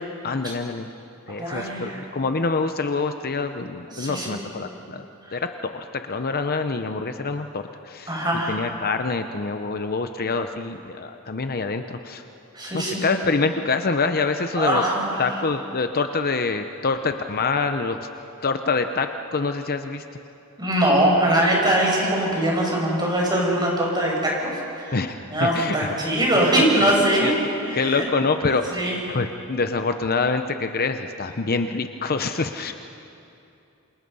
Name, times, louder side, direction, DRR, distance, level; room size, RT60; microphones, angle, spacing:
voice 1, 0.2-0.9 1.3-8.2 8.5-12.2 12.7-14.9 15.2-18.1 18.4-20.0 24.9-26.0 26.5-26.9 27.2-27.3 27.7-28.6 29.1-32.7, left 4 dB, 45° left, 7 dB, 0.8 m, -26 dB
voice 2, 1.4-2.0 3.9-4.4 5.2-5.4 8.1-8.6 12.5-13.0 14.6-15.2 20.6-25.0 25.3-27.3 27.6-28.0 28.7-29.0, right 1 dB, 20° right, -2 dB, 6.5 m, -22 dB
28.0 x 27.5 x 5.5 m, 2.7 s
head